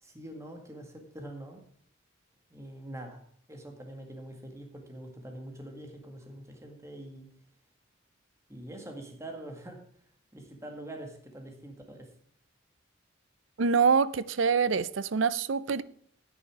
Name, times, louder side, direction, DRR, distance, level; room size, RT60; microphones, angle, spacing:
voice 1, 0.0-1.6 2.5-3.2 3.5-7.3 8.5-9.8 10.3-12.1, right 1 dB, 15° right, 1.8 m, -44 dB
voice 2, 13.6-15.8, right 5 dB, 65° right, 0.5 m, -25 dB
9.9 x 9.6 x 4.7 m
head